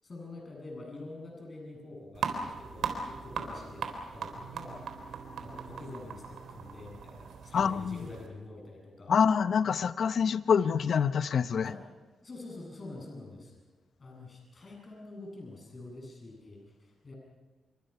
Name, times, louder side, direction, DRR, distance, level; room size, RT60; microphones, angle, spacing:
voice 1, 0.0-3.9 4.1-4.8 5.4-9.1 11.6-11.8 12.2-13.5 14.0-17.1, left 2 dB, 35° left, -1 dB, 7.8 m, -46 dB
sound 1, 2.1-8.3, right 5 dB, 80° right, 3.7 m, -39 dB
voice 2, 7.5-8.1 9.1-11.7, left 6 dB, 60° left, 14 dB, 0.8 m, -26 dB
28.0 x 24.5 x 5.8 m, 1.2 s
cardioid pair, 85°, 0 cm